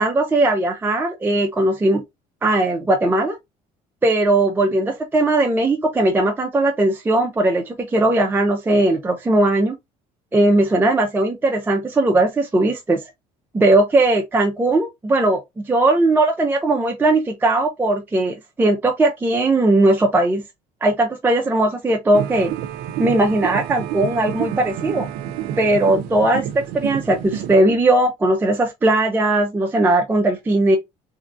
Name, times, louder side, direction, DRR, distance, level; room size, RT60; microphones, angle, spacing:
voice 1, 0.0-2.0 2.4-3.4 4.0-9.7 10.3-13.0 13.5-20.4 20.8-22.5 23.0-25.1 25.6-30.8, right 2 dB, 15° right, 0.4 m, -18 dB
sound 1, 22.1-27.6, right 10 dB, 85° right, 0.4 m, -29 dB
3.0 x 2.4 x 2.5 m
cardioid pair, 105°, 15 cm